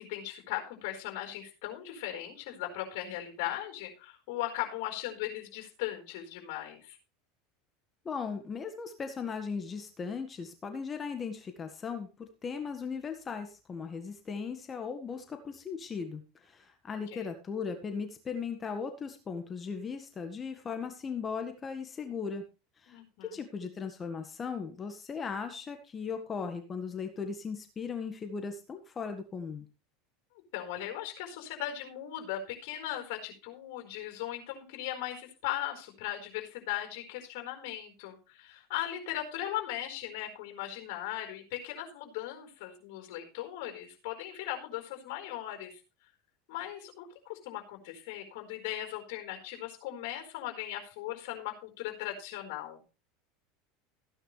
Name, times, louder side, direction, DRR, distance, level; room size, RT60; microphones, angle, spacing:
voice 1, 0.0-7.0 17.1-17.3 22.9-23.4 30.5-45.8 46.5-52.8, left 13 dB, 65° left, 4 dB, 4.5 m, -38 dB
voice 2, 8.0-22.5 22.8-29.7, left 5 dB, 30° left, 6 dB, 1.7 m, -38 dB
15.5 x 10.0 x 3.3 m, 0.31 s
hypercardioid pair, 85°, 0 cm